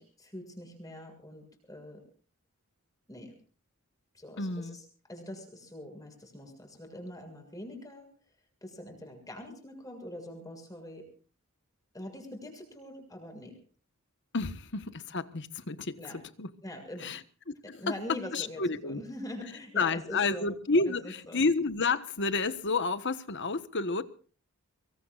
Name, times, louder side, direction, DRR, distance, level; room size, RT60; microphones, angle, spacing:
voice 1, 0.0-2.0 3.1-3.3 4.1-4.8 5.1-8.1 8.6-11.1 11.9-13.6 16.0-16.2 16.6-17.2 17.6-20.5 20.9-21.4, left 1 dB, 15° left, 7.0 m, -43 dB
voice 2, 4.4-4.8 14.3-16.0 16.4-16.5 17.0-17.2 17.5-17.9 18.3-19.0 19.7-24.1, left 3 dB, 55° left, 1.3 m, -30 dB
24.5 x 23.5 x 2.5 m
head